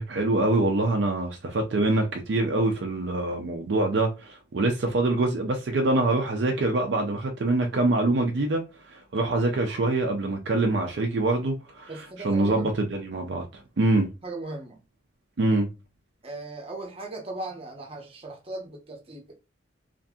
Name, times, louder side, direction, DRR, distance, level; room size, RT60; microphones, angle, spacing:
voice 1, 0.0-8.7 8.9-11.9 12.2-13.4 13.8-14.1 15.4-15.7, right 2 dB, 65° right, 0.5 m, -24 dB
voice 2, 11.9-12.7 14.2-14.8 16.2-19.3, right 2 dB, 30° right, 0.7 m, -38 dB
2.6 x 2.5 x 2.3 m
head